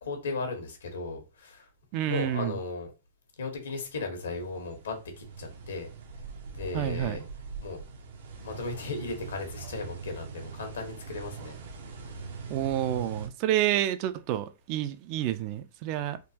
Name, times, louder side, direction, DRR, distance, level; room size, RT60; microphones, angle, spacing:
voice 1, 0.0-1.7 2.1-2.9 3.4-5.9 6.4-7.2 7.6-7.8 8.4-11.6, left 3 dB, 90° left, 1.3 m, -36 dB
voice 2, 1.9-2.6 6.7-7.2 12.5-16.2, right 12 dB, 40° right, 0.3 m, -29 dB
sound 1, 4.2-13.3, right 4 dB, 75° right, 0.7 m, -42 dB
3.6 x 2.5 x 2.8 m
hypercardioid pair, 135°, 0 cm